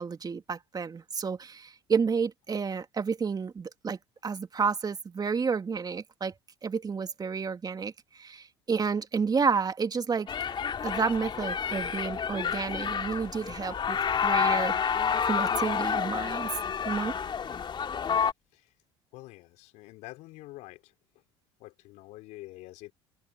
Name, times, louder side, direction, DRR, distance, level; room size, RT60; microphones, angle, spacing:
voice 1, 0.0-6.3 6.6-7.9 8.2-10.3 10.8-14.0 14.2-15.0 15.2-16.5 16.9-17.1, right 5 dB, 30° right, 2.7 m, -30 dB
sound 1, 10.3-18.3, left 7 dB, 35° left, 3.5 m, -29 dB
voice 2, 19.1-20.9 21.6-22.9, left 19 dB, 65° left, 3.9 m, -47 dB
open air
hypercardioid pair, 70°, 13 cm